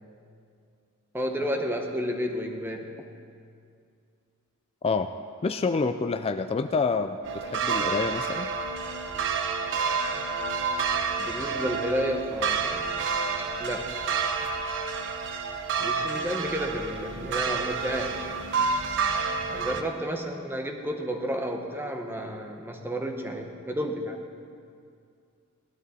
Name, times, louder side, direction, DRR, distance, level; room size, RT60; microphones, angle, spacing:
voice 1, 1.1-3.1 11.2-12.9 13.6-13.9 15.8-18.3 19.5-24.2, equal, 10° right, 3 dB, 0.8 m, -31 dB
voice 2, 5.4-8.5, left 4 dB, 25° left, 9 dB, 0.3 m, -27 dB
sound 1, 7.2-19.8, right 5 dB, 60° right, 0.8 m, -29 dB
16.5 x 12.0 x 4.2 m, 2.3 s
head